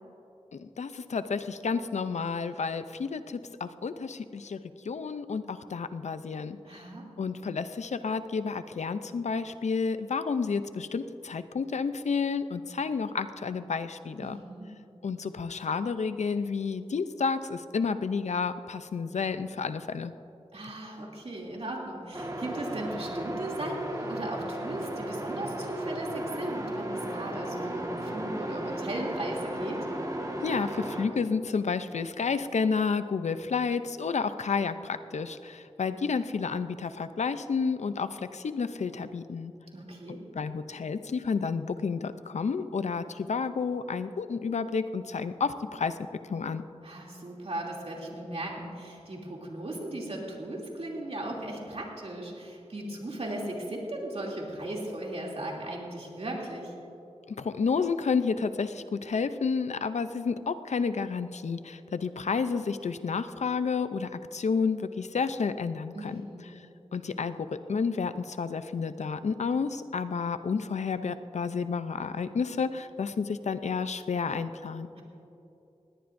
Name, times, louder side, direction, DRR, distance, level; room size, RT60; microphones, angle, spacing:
voice 1, 0.5-4.6 4.8-6.8 7.2-14.4 15.0-20.1 30.4-39.5 40.3-45.9 46.3-46.6 57.4-66.2 66.9-74.9, left 5 dB, 85° left, 11 dB, 0.5 m, -30 dB
voice 2, 6.6-7.1 14.2-14.7 20.5-29.9 39.7-40.2 46.8-56.7 65.9-66.5, right 1 dB, 60° right, -2 dB, 2.8 m, -37 dB
sound 1, 22.1-31.1, right 1 dB, 30° right, 1.6 m, -35 dB
20.0 x 17.0 x 2.6 m, 2.9 s
wide cardioid pair, 65°, 12 cm